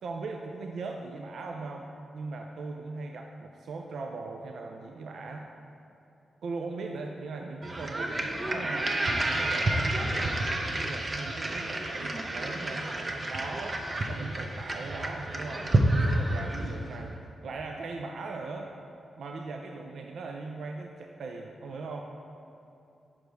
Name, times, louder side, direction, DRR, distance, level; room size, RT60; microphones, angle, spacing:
voice 1, 0.0-5.5 6.4-9.0 9.3-10.4 10.7-13.8 14.1-15.7 16.0-18.7 19.2-22.0, right 3 dB, 75° right, 2 dB, 0.3 m, -39 dB
sound 1, 7.6-16.9, right 1 dB, 40° right, 0.6 m, -29 dB
5.4 x 5.0 x 4.6 m, 2.8 s
cardioid pair, 75°, 0 cm